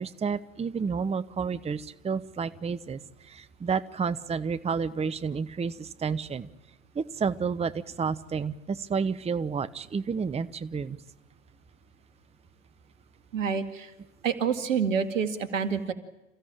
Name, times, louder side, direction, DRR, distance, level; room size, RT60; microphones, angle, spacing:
voice 1, 0.0-6.5 6.9-11.0, right 5 dB, 15° right, 14 dB, 1.0 m, -30 dB
voice 2, 13.3-13.9 14.2-15.9, right 6 dB, 80° right, 10 dB, 2.1 m, -27 dB
28.5 x 15.5 x 8.8 m, 1.0 s
hypercardioid pair, 80°, 38 cm